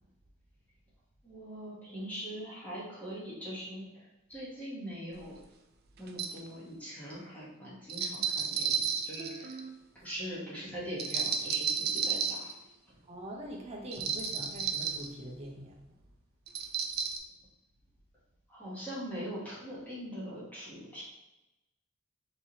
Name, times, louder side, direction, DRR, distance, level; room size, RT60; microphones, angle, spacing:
voice 1, 1.2-5.4 6.0-9.6 9.9-12.5 18.5-21.0, equal, 10° left, -8 dB, 1.1 m, -42 dB
sound 1, 5.2-5.3 6.1-6.4 7.9-9.7 11.0-12.5 13.9-15.1 16.5-17.2, right 6 dB, 50° right, 0.4 m, -32 dB
voice 2, 13.1-15.8, equal, 30° right, -1 dB, 0.8 m, -43 dB
4.6 x 3.0 x 2.8 m, 0.96 s
head